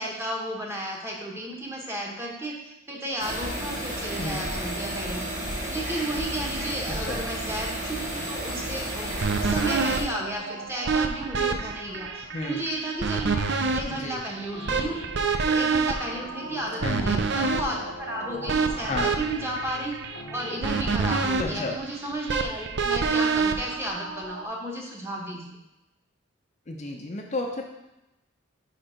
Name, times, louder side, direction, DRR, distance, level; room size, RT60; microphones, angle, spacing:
voice 1, 0.0-5.3 5.7-13.5 13.7-15.0 15.5-19.9 20.3-25.6, right 1 dB, 15° right, -2 dB, 0.9 m, -33 dB
sound 1, 3.2-10.0, right 1 dB, 35° right, 1.9 m, -32 dB
voice 2, 4.2-4.5 6.9-7.2 12.3-12.6 13.9-14.2 16.8-17.1 18.9-19.1 21.4-21.7 26.7-27.8, left 2 dB, 35° left, 1 dB, 0.5 m, -32 dB
sound 2, 9.2-24.4, right 4 dB, 55° right, 0.4 m, -28 dB
sound 3, 14.0-21.1, left 2 dB, 70° left, 0.8 m, -44 dB
5.3 x 4.4 x 5.0 m, 0.93 s
head